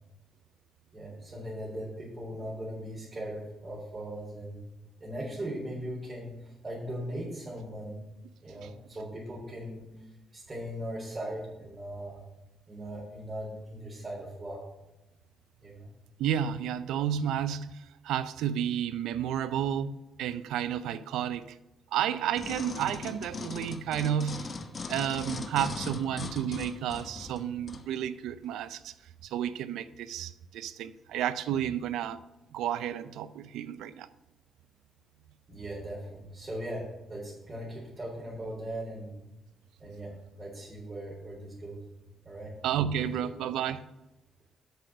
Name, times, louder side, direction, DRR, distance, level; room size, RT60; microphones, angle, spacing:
voice 1, 0.9-4.6 5.0-8.0 8.4-12.2 12.7-14.6 15.6-15.9 35.5-39.1 39.8-41.8 42.2-42.5 43.0-43.1, right 1 dB, 25° right, 3.7 m, -39 dB
voice 2, 16.2-21.6 21.9-24.5 24.9-28.9 29.2-32.2 32.5-34.1 42.6-43.9, right 9 dB, 85° right, 0.5 m, -31 dB
sound 1, 22.4-27.9 28.4-28.5, left 4 dB, 40° left, 1.0 m, -39 dB
8.0 x 6.7 x 6.3 m
cardioid pair, 90°, 0 cm